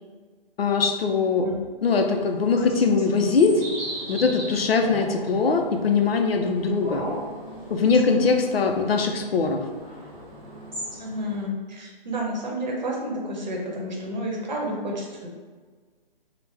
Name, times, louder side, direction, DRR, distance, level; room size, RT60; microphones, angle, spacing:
voice 1, 0.6-1.5 1.8-3.6 4.1-7.0 7.7-9.6, left 4 dB, 80° left, 4 dB, 0.5 m, -21 dB
sound 1, 1.9-11.4, right 1 dB, 10° right, 1.1 m, -38 dB
voice 2, 11.0-15.3, equal, 50° right, -2 dB, 0.8 m, -30 dB
2.9 x 2.1 x 3.3 m, 1.5 s
figure-of-eight pair, 140°, 29 cm